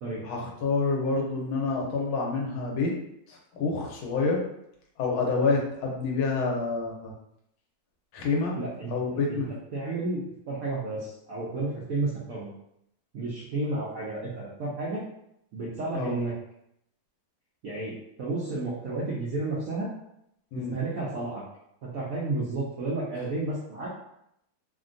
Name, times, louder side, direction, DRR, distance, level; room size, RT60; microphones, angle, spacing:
voice 1, 0.2-2.9 3.3-4.4 5.0-7.1 8.1-8.6 8.9-9.5 15.9-16.1 20.5-20.7, left 4 dB, 85° left, -1 dB, 1.6 m, -28 dB
voice 2, 8.6-9.4 9.7-10.2 10.5-12.5 13.1-15.0 15.5-16.3 17.6-19.9 20.7-21.4 21.8-23.9, right 2 dB, 80° right, -6 dB, 0.7 m, -32 dB
3.5 x 2.2 x 2.5 m, 0.77 s
omnidirectional pair, 2.2 m